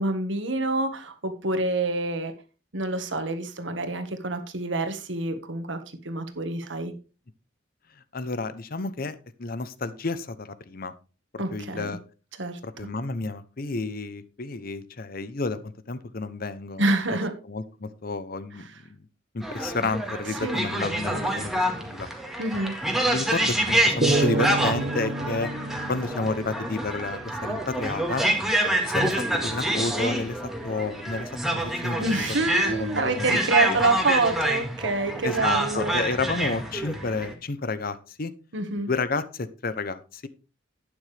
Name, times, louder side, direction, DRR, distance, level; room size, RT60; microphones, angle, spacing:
voice 1, 0.0-2.3 2.7-5.8 6.0-6.9 11.4-12.0 12.4-12.6 16.8-17.3 20.4-20.6 22.4-22.7 32.0-35.9 38.5-38.9, right 2 dB, 70° right, 8 dB, 1.7 m, -27 dB
voice 2, 8.1-10.9 11.3-12.0 12.6-16.8 17.4-19.0 19.3-22.1 22.9-25.5 25.9-28.2 28.6-32.1 32.7-33.3 33.7-33.8 35.2-38.3 38.9-40.3, left 3 dB, 50° left, 14 dB, 0.8 m, -31 dB
sound 1, 19.4-37.3, right 1 dB, ahead, 1.8 m, -27 dB
sound 2, 24.0-27.4, right 3 dB, 40° right, 0.7 m, -29 dB
11.5 x 9.3 x 3.4 m, 0.33 s
head